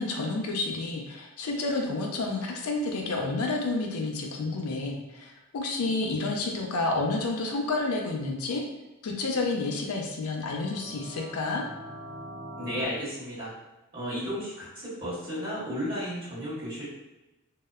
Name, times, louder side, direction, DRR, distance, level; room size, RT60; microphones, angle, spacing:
voice 1, 0.0-8.6 9.0-11.6, left 3 dB, 90° left, 1 dB, 0.4 m, -30 dB
sound 1, 10.3-12.9, right 1 dB, 45° left, 0.9 m, -43 dB
voice 2, 12.6-13.5 13.9-16.8, equal, 40° right, -10 dB, 1.2 m, -33 dB
2.7 x 2.0 x 2.3 m, 1.0 s
head